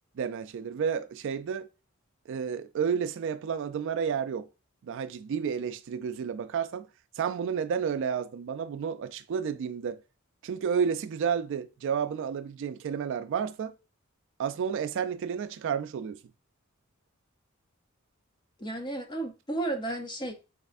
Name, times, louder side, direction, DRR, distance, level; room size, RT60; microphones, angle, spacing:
voice 1, 0.2-1.7 2.3-4.5 4.8-6.9 7.2-10.0 10.4-13.7 14.4-16.2, right 7 dB, 60° right, 0.3 m, -31 dB
voice 2, 18.6-20.3, right 2 dB, 20° left, 0.7 m, -33 dB
4.1 x 3.3 x 2.5 m
head